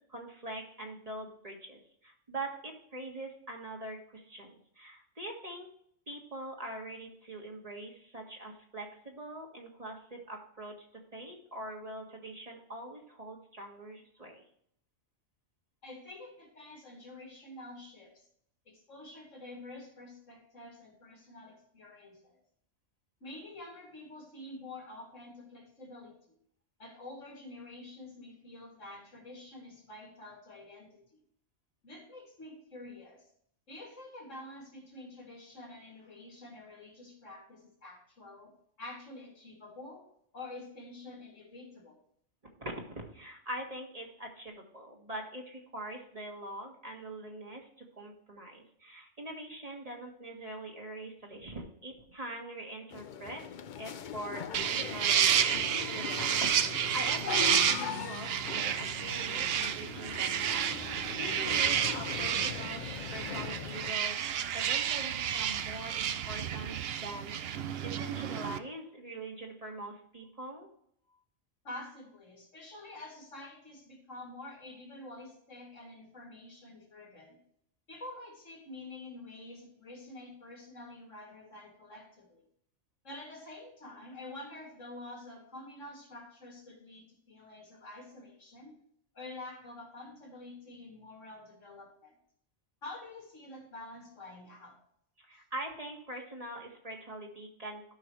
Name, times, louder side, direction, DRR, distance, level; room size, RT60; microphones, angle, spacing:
voice 1, 0.1-5.7 6.1-10.9 11.1-14.4 42.4-47.7 48.0-53.4 53.8-55.4 55.9-60.6 60.9-62.8 63.1-67.4 67.8-70.7 95.2-97.9, right 1 dB, 30° right, 1 dB, 1.9 m, -43 dB
voice 2, 15.8-18.2 18.6-22.4 23.2-26.4 26.8-31.2 31.8-33.3 33.7-38.5 38.8-40.1 40.3-42.0 71.6-77.4 77.9-82.4 83.0-88.7 89.1-92.2 92.8-94.8, left 2 dB, 90° left, -1 dB, 3.1 m, -48 dB
sound 1, 52.9-63.9, left 8 dB, 55° left, 0.5 m, -40 dB
sound 2, 54.5-68.6, right 9 dB, 60° right, 0.8 m, -31 dB
12.0 x 6.1 x 3.2 m, 0.67 s
omnidirectional pair, 1.3 m